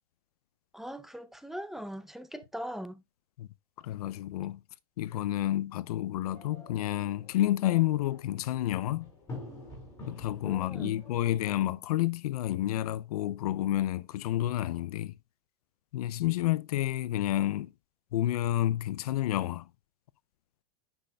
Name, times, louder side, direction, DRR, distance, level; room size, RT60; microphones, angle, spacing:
voice 1, 0.7-3.0 10.4-11.0, equal, ahead, 0.5 m, -40 dB
voice 2, 3.8-4.6 5.0-9.1 10.1-15.1 15.9-17.7 18.1-19.7, left 14 dB, 90° left, 0.5 m, -30 dB
sound 1, 6.2-11.4, left 2 dB, 20° left, 4.7 m, -48 dB
9.9 x 6.0 x 2.3 m
supercardioid pair, 150°, 19 cm